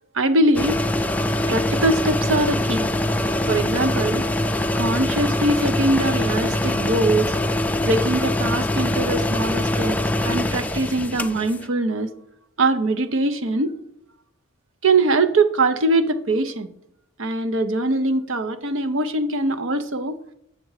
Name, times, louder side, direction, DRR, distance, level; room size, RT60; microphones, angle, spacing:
voice 1, 0.1-0.8 1.5-2.9 3.5-4.3 4.7-7.4 7.8-10.0 10.2-12.1 12.6-13.8 14.8-16.7 17.2-20.2, right 2 dB, 70° right, 10 dB, 0.7 m, -22 dB
sound 1, 0.5-11.7, left 1 dB, 5° left, 0.3 m, -23 dB
7.6 x 6.6 x 4.8 m, 0.76 s
head